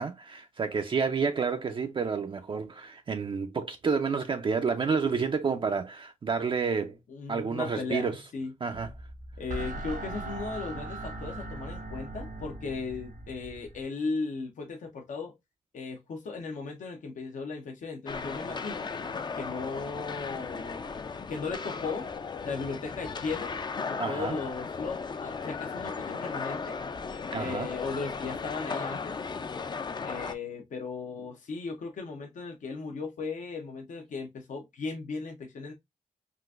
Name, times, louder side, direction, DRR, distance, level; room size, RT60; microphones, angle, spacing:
voice 1, 0.0-7.0 7.3-8.2 8.6-8.9 24.0-24.4 27.3-27.7, right 5 dB, 40° right, 0.3 m, -29 dB
voice 2, 7.1-8.5 9.4-15.3 15.7-18.9 19.4-20.9 21.3-22.1 22.4-23.6 23.9-26.8 27.4-29.2 30.0-35.7, left 4 dB, 75° left, 0.6 m, -36 dB
sound 1, 8.7-13.8, right 2 dB, 80° right, 1.3 m, -39 dB
sound 2, 18.1-30.3, left 5 dB, 35° left, 0.3 m, -36 dB
3.7 x 2.4 x 2.3 m
cardioid pair, 80°, 13 cm